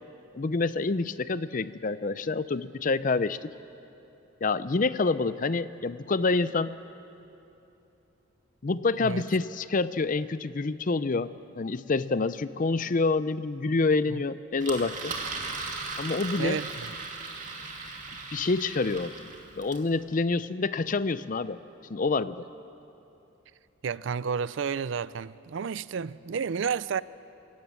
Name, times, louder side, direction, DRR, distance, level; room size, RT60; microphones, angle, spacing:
voice 1, 0.3-3.5 4.4-6.8 8.6-11.3 11.6-15.1 16.0-16.6 18.3-19.1 19.6-21.6 21.9-22.4, left 3 dB, 40° left, 0.5 m, -27 dB
Engine, 14.6-19.9, right 4 dB, 35° right, 2.4 m, -37 dB
voice 2, 16.4-17.0 23.8-27.0, right 6 dB, 65° right, 0.4 m, -31 dB
26.0 x 17.5 x 7.4 m
head